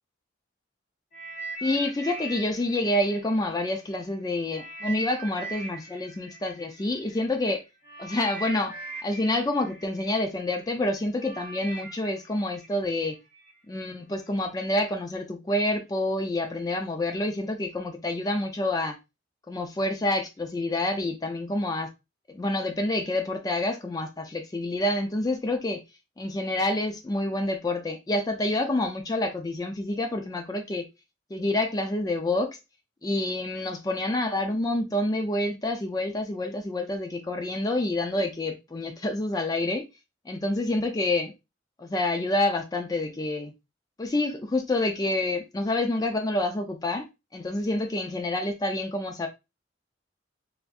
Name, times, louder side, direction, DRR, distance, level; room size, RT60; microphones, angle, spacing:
sound 1, 1.1-4.0 4.5-13.5 14.2-14.3, right 2 dB, 45° left, 1.6 m, -41 dB
voice 1, 1.6-7.6 8.0-8.7 9.0-13.2 13.7-19.0 19.5-21.9 22.3-25.8 26.2-30.9 31.3-32.6 33.0-39.8 40.3-41.3 41.8-43.5 44.0-47.1 47.3-49.3, left 1 dB, 20° left, 0.4 m, -28 dB
3.3 x 2.6 x 2.3 m
head